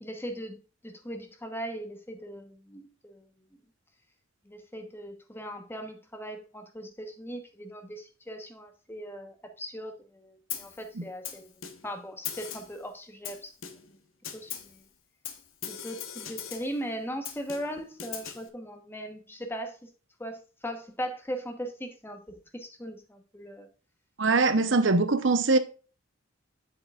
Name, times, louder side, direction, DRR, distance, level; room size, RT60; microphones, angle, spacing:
voice 1, 0.0-3.3 4.4-11.5 11.8-13.5 13.9-14.0 14.3-14.8 15.7-19.9 20.2-23.7, equal, 10° left, 1.1 m, -39 dB
Snare drum, 10.5-10.8 11.2-12.0 12.2-12.8 13.2-14.0 14.2-14.8 15.2-16.8 17.2-18.5, left 9 dB, 80° left, 1.1 m, -40 dB
voice 2, 24.2-25.6, right 3 dB, 60° right, 0.8 m, -22 dB
7.7 x 7.5 x 2.4 m
head